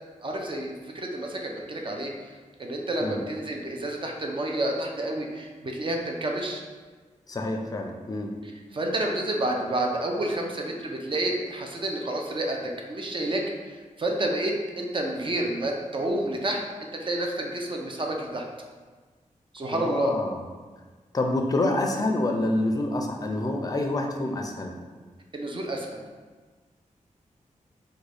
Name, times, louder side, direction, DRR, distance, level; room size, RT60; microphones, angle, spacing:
voice 1, 0.2-2.3 2.6-6.6 8.4-12.6 12.9-13.4 14.0-16.6 16.9-18.4 19.5-20.1 25.3-26.0, right 1 dB, 40° right, 1 dB, 0.5 m, -29 dB
voice 2, 7.3-8.3 19.7-20.4 21.1-24.7, left 2 dB, 30° left, 2 dB, 0.4 m, -27 dB
3.6 x 2.2 x 3.3 m, 1.4 s
wide cardioid pair, 85°, 13 cm